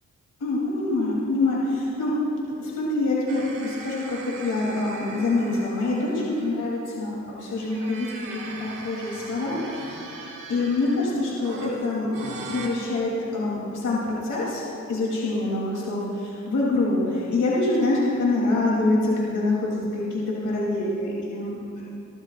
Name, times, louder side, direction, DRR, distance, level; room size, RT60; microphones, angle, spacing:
voice 1, 0.4-2.1 2.5-10.0 10.5-21.8, left 2 dB, 70° left, -6 dB, 3.3 m, -25 dB
sound 1, 3.3-6.8 7.4-12.7, right 3 dB, 85° right, 2.2 m, -40 dB
27.5 x 13.0 x 2.5 m, 2.7 s
cardioid pair, 75°, 31 cm